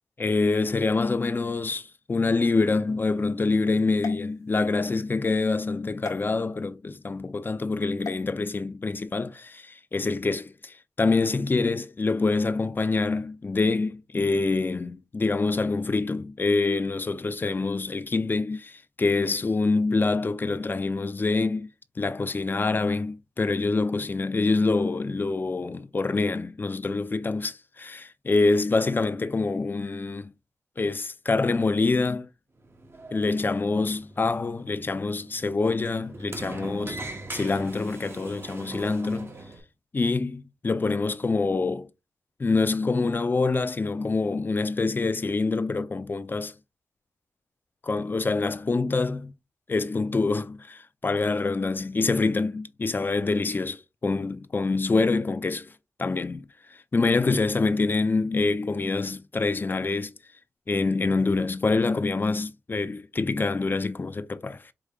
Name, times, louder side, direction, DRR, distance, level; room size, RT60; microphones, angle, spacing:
voice 1, 0.2-21.7 22.0-30.3 30.8-32.3 33.1-37.0 37.3-39.3 39.9-41.9 42.4-46.5 47.8-49.3 49.7-55.7 56.0-56.5 56.9-60.1 60.7-64.6, left 3 dB, 35° left, 0.5 m, -26 dB
sound 1, 4.0-5.0 6.0-6.2 8.0-8.2, left 4 dB, 75° left, 1.1 m, -39 dB
Sliding door, 32.6-39.6, right 2 dB, 45° right, 1.2 m, -41 dB
4.9 x 3.1 x 2.4 m
cardioid pair, 55°, 6 cm